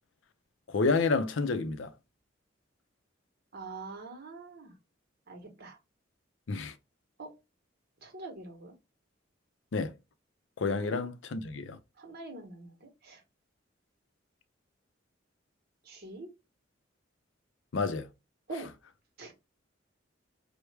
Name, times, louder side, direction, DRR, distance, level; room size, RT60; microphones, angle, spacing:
voice 1, 0.7-1.9 6.5-6.7 9.7-9.9 10.6-11.8 17.7-18.1, left 4 dB, 75° left, 0.5 m, -29 dB
voice 2, 3.5-4.8 5.3-5.8 7.2-7.4 8.0-8.7 10.8-11.0 12.0-13.2 15.8-16.3 18.5-18.7 19.2-19.3, right 3 dB, 55° right, 1.1 m, -44 dB
4.6 x 2.1 x 3.2 m
head